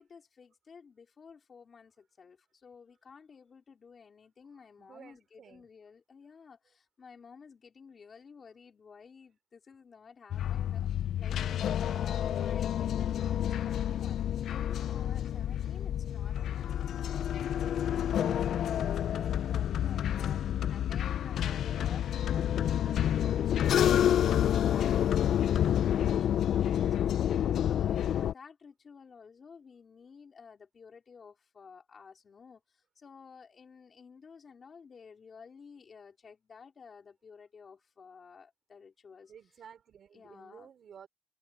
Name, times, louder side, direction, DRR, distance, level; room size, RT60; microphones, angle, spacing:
voice 1, 0.0-10.9 11.2-14.2 14.5-39.3 40.1-40.7, left 5 dB, 40° left, 4.1 m, -53 dB
voice 2, 4.5-5.7 39.3-41.1, right 8 dB, 55° right, 3.6 m, -54 dB
sound 1, 10.3-28.3, left 10 dB, 70° left, 0.3 m, -29 dB
cardioid pair, 150°, 0 cm